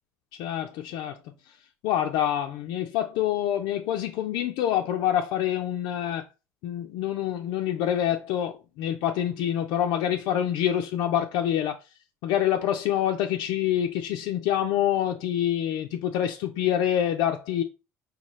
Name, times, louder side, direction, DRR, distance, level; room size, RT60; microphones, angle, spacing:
voice 1, 0.4-1.2 1.8-6.2 6.6-11.8 12.2-17.6, left 11 dB, 75° left, 0.4 m, -26 dB
4.0 x 2.3 x 3.0 m
hypercardioid pair, 70°, 8 cm